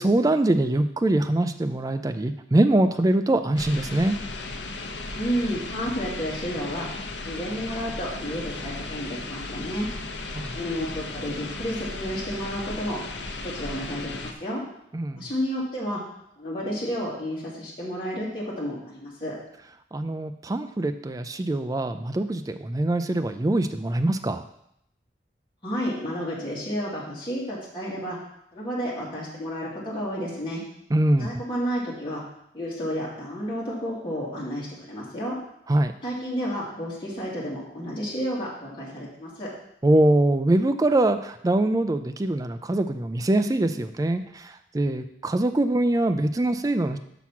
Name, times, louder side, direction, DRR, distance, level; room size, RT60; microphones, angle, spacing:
voice 1, 0.0-4.2 10.3-10.6 14.9-15.3 19.9-24.4 30.9-31.3 35.7-35.9 39.8-47.0, right 1 dB, 20° right, 8 dB, 0.3 m, -23 dB
sound 1, 3.6-14.3, left 2 dB, 85° left, 0.8 m, -35 dB
voice 2, 5.2-6.9 7.3-9.9 10.5-14.6 15.2-16.0 16.4-19.4 25.6-28.2 28.5-30.6 31.2-32.2 32.5-35.4 36.0-39.5, equal, 30° left, -6 dB, 2.1 m, -31 dB
6.0 x 6.0 x 5.7 m, 0.75 s
head